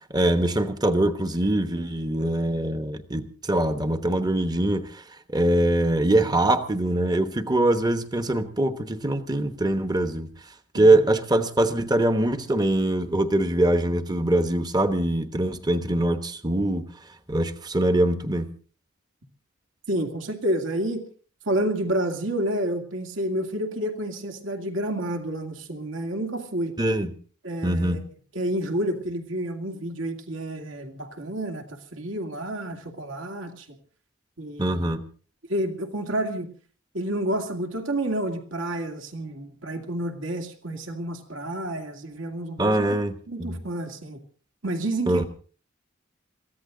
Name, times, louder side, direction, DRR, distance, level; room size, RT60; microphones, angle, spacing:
voice 1, 0.1-5.0 5.3-10.3 10.7-16.9 17.3-18.5 26.8-27.1 27.6-28.0 34.6-35.0 42.6-43.6 45.1-45.2, right 1 dB, 20° right, 10 dB, 1.2 m, -23 dB
voice 2, 19.9-21.0 21.5-26.8 27.4-28.0 28.3-33.7 34.4-35.0 35.5-36.5 36.9-42.9 43.3-44.2 44.6-45.3, right 1 dB, 70° right, 4 dB, 2.4 m, -29 dB
22.5 x 15.0 x 3.9 m, 0.41 s
head